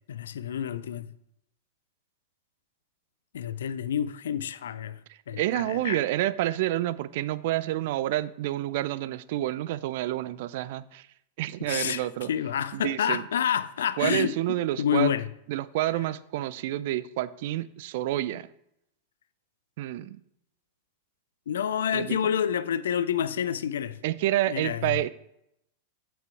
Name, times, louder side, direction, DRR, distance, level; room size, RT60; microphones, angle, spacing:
voice 1, 0.1-1.1 3.3-5.0 5.3-6.0 11.7-15.3 21.5-24.0 24.5-25.0, left 9 dB, 70° left, 0.4 m, -28 dB
voice 2, 5.4-11.0 11.4-12.3 12.7-13.2 14.0-15.1 15.5-18.5 19.8-20.2 21.9-22.2 24.0-25.1, right 14 dB, 55° right, 0.3 m, -28 dB
7.5 x 5.7 x 4.8 m
figure-of-eight pair, 95°, 0 cm